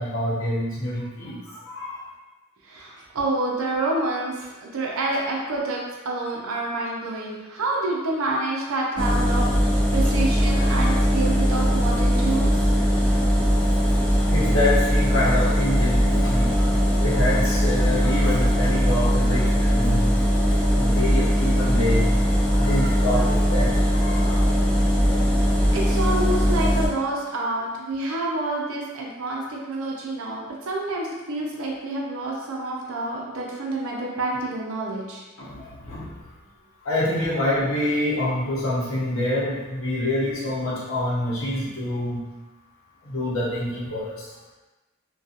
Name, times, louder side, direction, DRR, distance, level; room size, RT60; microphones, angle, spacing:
voice 1, 0.0-2.1 10.6-10.7 13.0-13.1 14.3-20.2 20.7-22.1 22.5-24.5 35.4-36.2 36.8-42.2 43.0-44.3, left 1 dB, 70° left, -7 dB, 0.8 m, -26 dB
voice 2, 2.6-12.6 25.7-35.2, right 2 dB, 90° right, -2 dB, 0.6 m, -28 dB
sound 1, 9.0-26.9, equal, 5° left, 0.4 m, -20 dB
2.6 x 2.3 x 2.4 m, 1.2 s
head